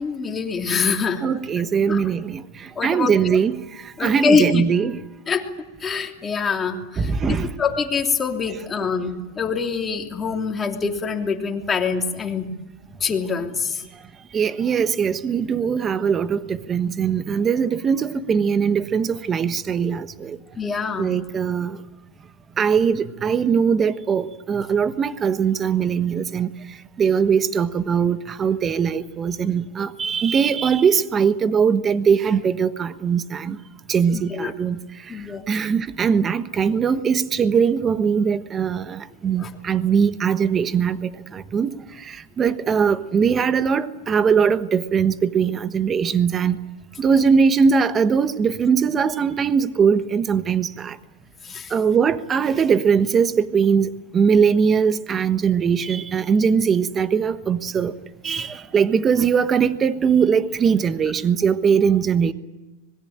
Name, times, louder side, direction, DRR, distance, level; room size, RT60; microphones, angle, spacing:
voice 1, 0.0-1.3 1.9-2.0 2.8-3.1 4.0-4.6 5.3-5.5 5.8-12.5 13.0-13.8 20.6-21.1 34.1-34.5 35.1-35.4 39.4-39.5 51.4-51.7, left 5 dB, 15° left, 3.1 m, -24 dB
voice 2, 1.2-2.4 2.8-3.6 4.0-5.0 7.0-7.5 14.3-20.4 21.0-21.8 22.6-26.5 27.0-33.6 33.9-34.8 35.5-41.0 41.3-41.7 42.0-46.5 47.0-50.9 51.7-53.9 54.1-57.9 58.2-62.3, right 6 dB, 20° right, 1.3 m, -20 dB
25.5 x 21.0 x 8.9 m
supercardioid pair, 140°, 0 cm